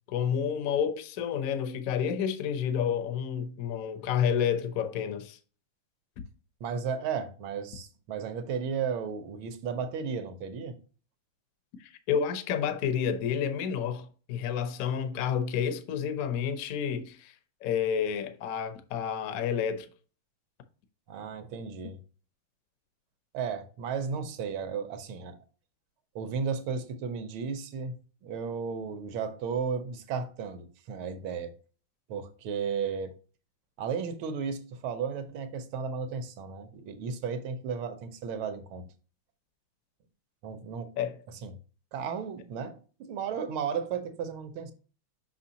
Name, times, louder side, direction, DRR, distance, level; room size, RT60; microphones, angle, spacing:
voice 1, 0.1-5.4 11.8-17.3 17.6-19.9 41.0-41.2, left 8 dB, 65° left, 0.9 m, -30 dB
voice 2, 6.6-10.8 21.1-22.0 23.3-25.4 26.1-31.5 32.1-33.1 33.8-38.9 40.4-40.9 41.4-41.5 41.9-44.7, right 6 dB, 75° right, 1.7 m, -34 dB
6.1 x 5.7 x 2.8 m
omnidirectional pair, 2.4 m